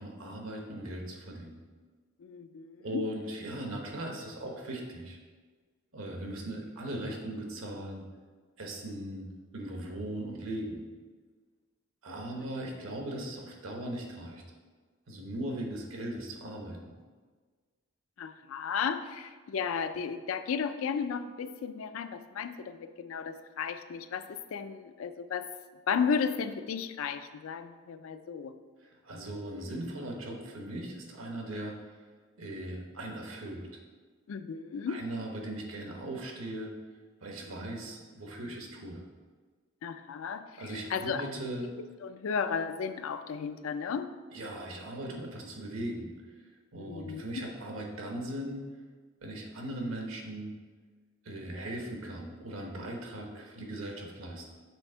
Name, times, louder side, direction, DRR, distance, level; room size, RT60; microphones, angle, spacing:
voice 1, 0.0-1.6 2.8-5.2 5.9-8.0 8.6-9.2 9.5-10.8 12.0-14.4 15.1-16.9 28.8-32.0 32.4-33.7 34.9-36.7 37.2-39.0 40.6-41.7 44.3-46.1 46.7-48.6 49.2-50.5 51.2-54.4, right 1 dB, 75° right, 1 dB, 1.1 m, -39 dB
voice 2, 2.2-3.1 18.2-25.5 25.9-28.5 34.3-35.0 39.8-41.3 42.0-44.1 46.8-47.4, left 6 dB, 75° left, 10 dB, 0.4 m, -34 dB
6.1 x 3.5 x 4.4 m, 1.4 s
head